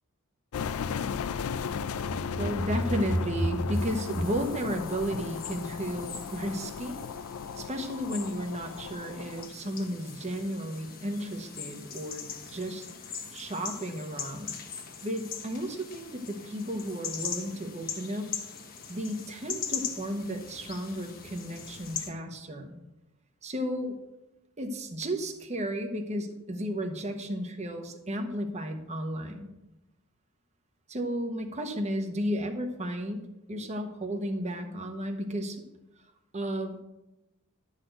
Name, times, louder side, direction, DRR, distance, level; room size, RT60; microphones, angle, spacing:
sound 1, 0.5-9.5, left 6 dB, 80° left, 0.4 m, -36 dB
voice 1, 2.3-7.0 7.6-12.9 13.3-14.5 15.0-18.3 18.9-22.8 23.4-24.0 24.6-29.5 30.9-35.6 36.3-36.8, equal, 30° right, 5 dB, 1.0 m, -33 dB
sound 2, 3.7-22.1, left 7 dB, 45° left, 1.2 m, -41 dB
11.5 x 4.1 x 7.8 m, 0.96 s
head